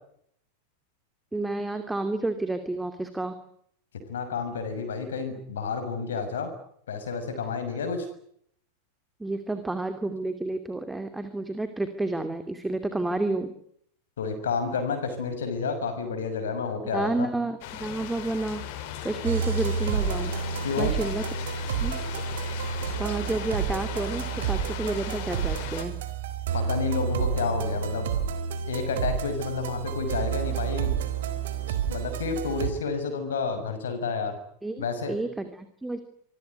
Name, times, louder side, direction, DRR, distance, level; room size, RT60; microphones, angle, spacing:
voice 1, 1.3-3.4 9.2-13.5 16.9-20.4 20.8-21.2 21.8-22.0 23.0-26.0 34.6-36.0, right 2 dB, 5° right, 8 dB, 2.8 m, -30 dB
voice 2, 4.1-6.5 6.9-8.1 14.2-17.3 20.6-20.9 26.5-28.1 28.7-31.0 31.7-34.4 34.8-35.2, left 5 dB, 65° left, 7 dB, 6.4 m, -30 dB
sound 1, 17.6-25.9, left 10 dB, 50° left, 5.1 m, -38 dB
sound 2, 19.2-32.7, right 6 dB, 55° right, 4.0 m, -30 dB
27.0 x 21.0 x 9.7 m, 0.68 s
figure-of-eight pair, 90°, 0 cm